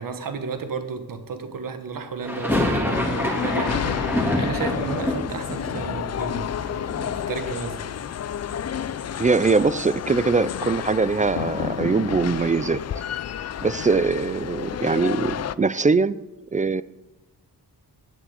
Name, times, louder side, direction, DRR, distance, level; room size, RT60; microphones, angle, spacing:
voice 1, 0.0-7.9, right 5 dB, 55° right, 9 dB, 1.4 m, -33 dB
sound 1, 2.2-8.2 8.4-9.3 9.5-9.6 9.9-12.1, left 1 dB, 5° right, 3.1 m, -28 dB
sound 2, 2.9-15.6, left 9 dB, 40° left, 0.4 m, -30 dB
voice 2, 9.2-12.8 13.6-16.2 16.5-16.8, right 4 dB, 20° right, 17 dB, 0.3 m, -22 dB
10.5 x 7.7 x 8.0 m, 1.0 s
cardioid pair, 90°, 39 cm